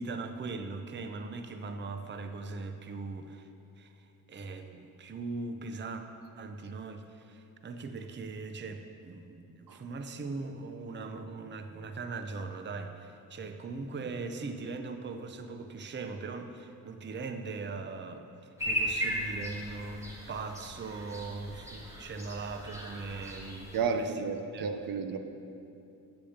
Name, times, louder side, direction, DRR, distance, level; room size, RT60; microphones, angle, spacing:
voice 1, 0.0-3.5 3.8-6.0 6.4-24.3 24.5-24.7, right 3 dB, 30° right, 7 dB, 0.6 m, -40 dB
sound 1, 18.6-23.8, equal, 10° right, 2.2 m, -37 dB
voice 2, 23.7-25.2, right 5 dB, 65° right, 7 dB, 0.8 m, -32 dB
8.0 x 6.8 x 8.0 m, 2.7 s
cardioid pair, 85°, 37 cm